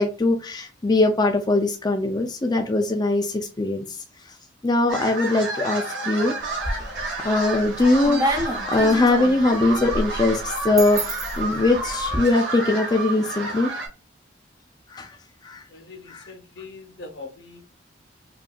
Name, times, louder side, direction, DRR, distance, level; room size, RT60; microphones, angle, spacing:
voice 1, 0.0-4.0 4.6-6.3 7.2-13.7 14.9-15.1 15.4-15.6 16.1-16.3, left 2 dB, 20° left, 0.4 m, -21 dB
sound 1, 4.9-13.9, right 2 dB, 70° right, 1.6 m, -31 dB
sound 2, 6.4-7.1 7.5-12.2, right 1 dB, 20° right, 0.8 m, -29 dB
voice 2, 15.7-17.6, left 3 dB, 65° left, 0.8 m, -41 dB
5.0 x 2.7 x 2.3 m
head